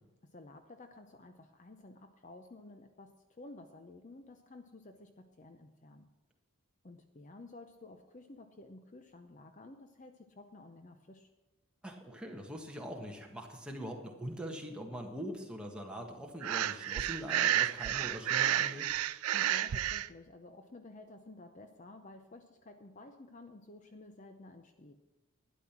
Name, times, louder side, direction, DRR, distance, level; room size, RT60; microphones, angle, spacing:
voice 1, 0.2-6.1 6.8-11.3 19.3-25.0, left 2 dB, 35° left, 7 dB, 0.6 m, -53 dB
voice 2, 11.8-18.9, equal, 5° right, 0 dB, 1.5 m, -43 dB
Breathing, 16.4-20.1, right 12 dB, 85° right, 0.4 m, -31 dB
12.0 x 10.5 x 5.9 m, 1.2 s
head